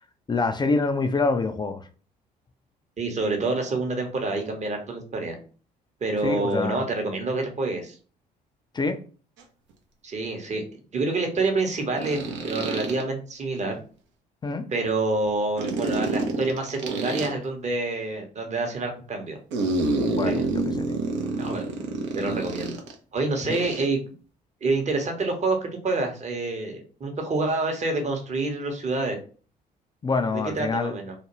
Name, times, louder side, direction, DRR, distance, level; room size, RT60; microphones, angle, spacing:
voice 1, 0.3-1.9 6.2-6.8 8.7-9.0 14.4-14.7 20.0-21.0 23.5-23.6 30.0-30.9, left 3 dB, 20° left, 0.4 m, -26 dB
voice 2, 3.0-5.4 6.0-8.0 10.0-10.6 10.9-12.2 12.4-13.7 14.7-19.4 20.3-20.4 21.4-21.6 22.1-22.7 23.1-24.0 24.6-29.2 30.6-31.1, right 3 dB, 35° right, 0.9 m, -27 dB
sound 1, 9.4-9.5 12.0-13.0 15.6-17.3 19.5-22.9 23.5-23.9, right 3 dB, 60° right, 0.6 m, -28 dB
2.4 x 2.2 x 3.0 m
hypercardioid pair, 50°, 21 cm